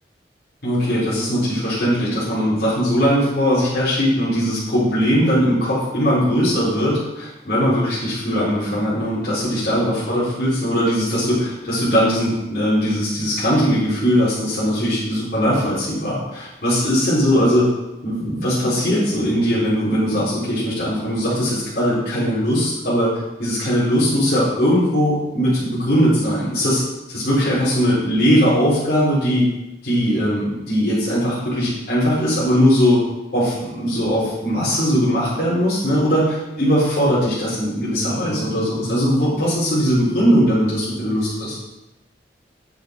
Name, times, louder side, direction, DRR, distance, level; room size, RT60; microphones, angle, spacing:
voice 1, 0.6-17.7 18.0-26.8 27.1-29.4 29.8-33.0 33.3-41.6, equal, 55° left, -10 dB, 4.2 m, -19 dB
9.4 x 6.9 x 5.3 m, 0.98 s
head